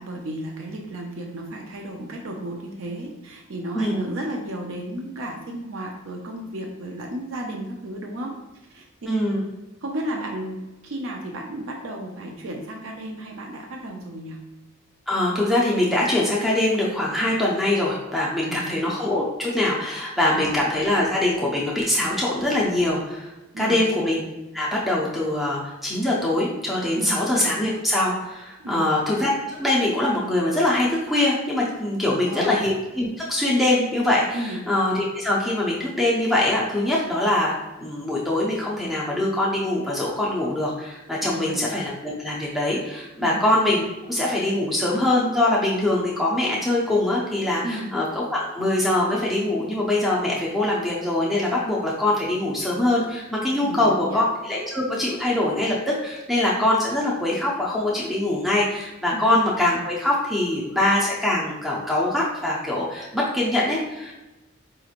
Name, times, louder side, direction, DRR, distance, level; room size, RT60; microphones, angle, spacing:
voice 1, 0.0-8.3 8.7-8.9 9.4-9.5 9.8-14.4 18.4-18.8 20.3-20.5 23.5-23.8 26.9-27.2 28.6-29.0 32.0-32.5 34.3-34.6 41.2-41.6 43.2-43.4 47.6-47.9 53.6-54.2 59.1-59.3, right 1 dB, 65° right, 1 dB, 0.5 m, -33 dB
voice 2, 3.7-4.1 9.1-9.4 15.1-23.3 23.6-24.2 24.5-37.5 37.8-64.1, left 1 dB, ahead, -5 dB, 0.5 m, -23 dB
4.8 x 2.9 x 2.4 m, 1.1 s
head